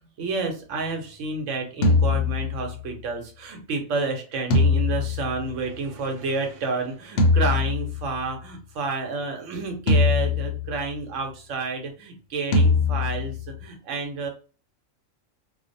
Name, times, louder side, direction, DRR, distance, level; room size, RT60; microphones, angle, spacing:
voice 1, 0.2-14.3, right 3 dB, 70° right, 4 dB, 1.0 m, -30 dB
sound 1, 1.8-3.0 4.5-6.0 7.2-8.4 9.9-11.1 12.5-13.6, left 3 dB, 65° left, 0.7 m, -22 dB
2.5 x 2.0 x 2.5 m, 0.37 s
omnidirectional pair, 1.4 m